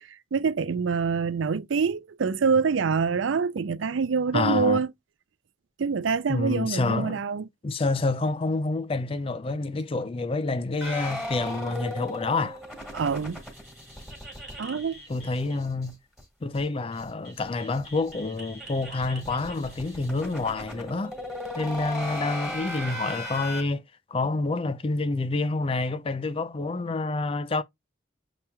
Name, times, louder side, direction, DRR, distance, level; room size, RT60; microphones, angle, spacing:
voice 1, 0.0-4.9 5.8-7.5 12.9-13.4 14.6-15.0, right 5 dB, 80° right, 0.5 m, -26 dB
voice 2, 4.3-4.8 6.3-7.2 7.6-12.6 15.1-16.0 16.4-21.1 21.5-23.8 24.1-27.6, left 3 dB, 30° left, 0.4 m, -28 dB
sound 1, 10.8-15.9 16.2-16.3 16.5-16.6 16.9-23.6, left 1 dB, ahead, 1.7 m, -37 dB
7.0 x 3.0 x 2.2 m
head